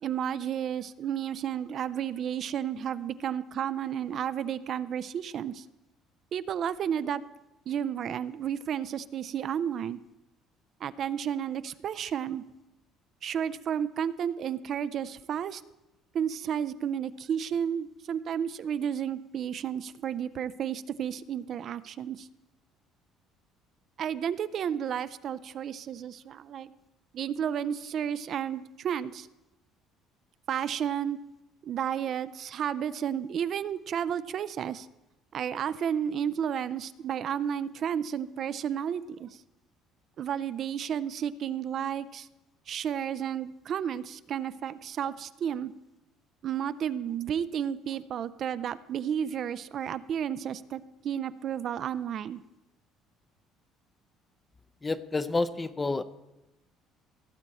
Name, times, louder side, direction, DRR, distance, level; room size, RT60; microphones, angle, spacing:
voice 1, 0.0-5.7 6.3-7.2 7.7-10.0 10.8-12.4 13.2-15.6 16.1-22.3 24.0-26.7 27.1-29.3 30.5-31.2 31.6-34.9 35.3-39.3 40.2-42.3 42.7-45.7 46.4-52.4, right 9 dB, 50° right, 15 dB, 0.4 m, -32 dB
voice 2, 54.8-56.0, left 3 dB, 20° left, 14 dB, 0.6 m, -29 dB
17.0 x 7.6 x 4.2 m, 0.96 s
cardioid pair, 115°, 0 cm